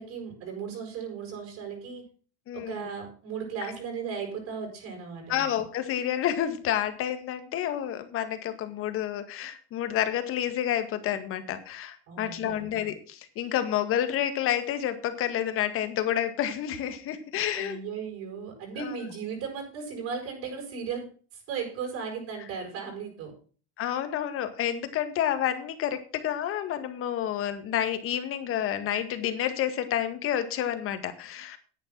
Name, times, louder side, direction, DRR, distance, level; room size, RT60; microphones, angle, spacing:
voice 1, 0.0-2.0 2.5-5.5 12.1-12.8 17.5-21.1 21.3-23.3, right 6 dB, 50° right, 0 dB, 7.5 m, -36 dB
voice 2, 2.5-2.9 3.6-3.7 5.3-17.8 18.8-19.0 23.8-31.6, left 10 dB, 40° left, 10 dB, 2.0 m, -29 dB
10.0 x 8.9 x 6.1 m, 0.41 s
supercardioid pair, 115°, 32 cm